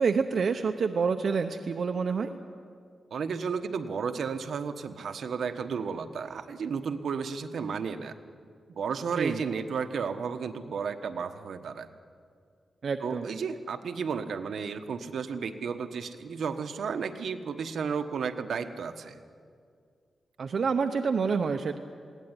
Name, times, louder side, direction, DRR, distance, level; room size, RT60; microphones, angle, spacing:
voice 1, 0.0-2.3 9.2-9.4 12.8-13.3 20.4-21.8, right 5 dB, 60° right, 6 dB, 0.8 m, -27 dB
voice 2, 3.1-8.2 8.7-11.9 13.0-19.2, right 6 dB, 75° right, 8 dB, 1.2 m, -33 dB
21.0 x 17.5 x 9.8 m, 2.2 s
wide cardioid pair, 130°, 0 cm